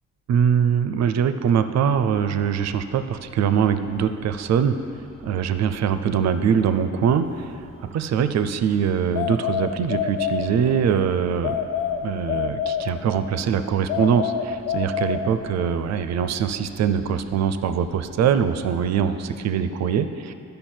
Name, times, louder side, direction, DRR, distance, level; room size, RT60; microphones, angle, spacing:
voice 1, 0.3-4.8 5.2-7.6 7.9-11.5 12.0-20.3, right 7 dB, 60° right, 10 dB, 0.6 m, -22 dB
sound 1, 1.8-19.1, left 1 dB, 20° left, 0.9 m, -48 dB
sound 2, 9.1-10.9 11.4-13.3 13.9-15.8, left 8 dB, 85° left, 0.6 m, -27 dB
12.5 x 5.3 x 4.4 m, 2.8 s
cardioid pair, 90°, 30 cm